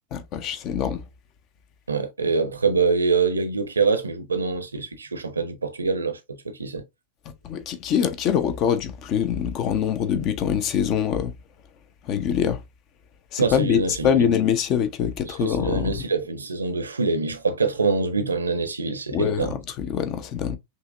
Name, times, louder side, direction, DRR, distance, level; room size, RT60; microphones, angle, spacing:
voice 1, 0.1-1.0 7.4-11.3 12.1-12.6 13.3-16.1 19.1-20.6, left 8 dB, 40° left, 0.7 m, -24 dB
voice 2, 1.9-6.2 6.4-6.8 13.4-14.3 15.3-19.6, right 4 dB, 75° right, 0.7 m, -25 dB
5.5 x 2.9 x 2.5 m
figure-of-eight pair, 90°, 0 cm